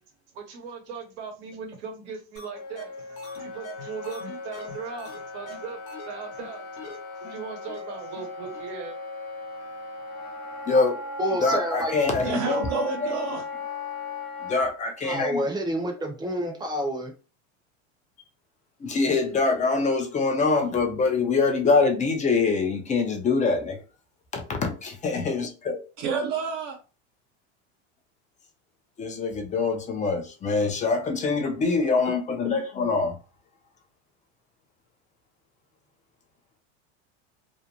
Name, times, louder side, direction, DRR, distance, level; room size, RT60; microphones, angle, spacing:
voice 1, 0.4-5.8 6.1-6.8 7.2-8.9, right 6 dB, 80° right, 0.9 m, -39 dB
sound 1, 2.4-2.5 2.8-2.9 3.2-5.2 5.5-5.6 5.9-6.1 6.4-6.5 6.8-7.0 7.2-7.3 7.7-7.8 8.2-8.3 8.5-8.6, equal, 75° left, 0.9 m, -41 dB
Wind instrument woodwind instrument, 2.5-14.6, left 3 dB, 45° left, 0.8 m, -37 dB
voice 2, 10.7-11.0 11.4-13.1 14.4-15.4 18.8-23.8 24.3-25.8 29.0-33.2, left 4 dB, 20° left, 0.5 m, -24 dB
voice 3, 11.2-11.9 15.0-17.1, equal, 15° right, 0.7 m, -28 dB
voice 4, 12.0-13.5 26.0-26.8, right 5 dB, 55° right, 0.7 m, -29 dB
2.5 x 2.1 x 2.9 m
supercardioid pair, 120°, 33 cm